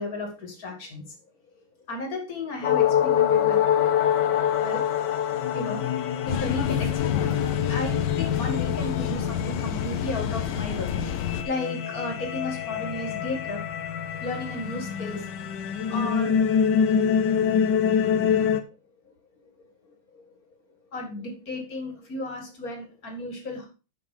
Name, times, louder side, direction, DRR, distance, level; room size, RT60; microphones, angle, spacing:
voice 1, 0.0-1.3 1.9-3.6 4.6-4.8 5.5-5.9 6.2-13.6 14.1-15.5 15.8-16.4 19.0-19.1 19.4-20.4 20.9-23.7, left 2 dB, 40° left, 2 dB, 2.7 m, -34 dB
sound 1, 2.6-18.6, left 8 dB, 65° left, 1.2 m, -25 dB
sound 2, 6.3-11.4, left 10 dB, 80° left, 1.7 m, -30 dB
6.7 x 6.5 x 5.1 m, 0.33 s
omnidirectional pair, 2.4 m